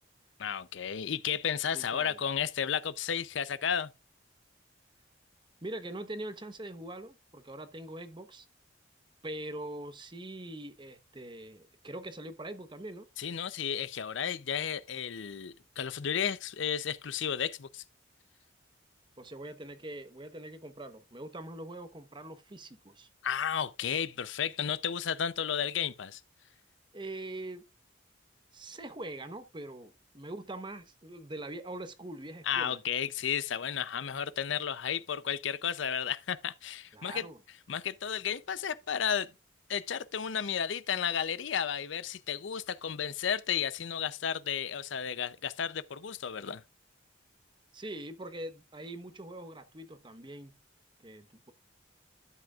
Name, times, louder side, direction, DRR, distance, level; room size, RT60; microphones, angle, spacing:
voice 1, 0.4-3.9 13.2-17.8 23.2-26.2 32.5-37.2 37.7-39.3 39.7-46.6, left 8 dB, 70° left, 0.5 m, -33 dB
voice 2, 1.7-2.2 5.6-8.5 9.2-13.1 19.2-23.1 26.9-27.6 28.5-32.8 36.9-37.4 47.7-50.5 51.0-51.5, right 1 dB, 25° right, 1.0 m, -43 dB
12.5 x 7.7 x 2.4 m
head